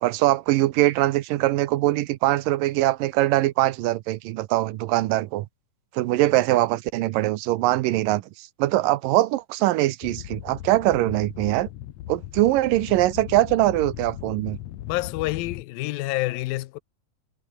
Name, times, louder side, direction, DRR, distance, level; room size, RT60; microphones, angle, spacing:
voice 1, 0.0-5.5 5.9-11.7 12.1-14.6, right 16 dB, 80° right, 2.4 m, -22 dB
sound 1, 10.0-15.6, left 13 dB, 70° left, 1.8 m, -38 dB
voice 2, 14.9-16.8, left 18 dB, 90° left, 2.5 m, -28 dB
omnidirectional pair, 4.0 m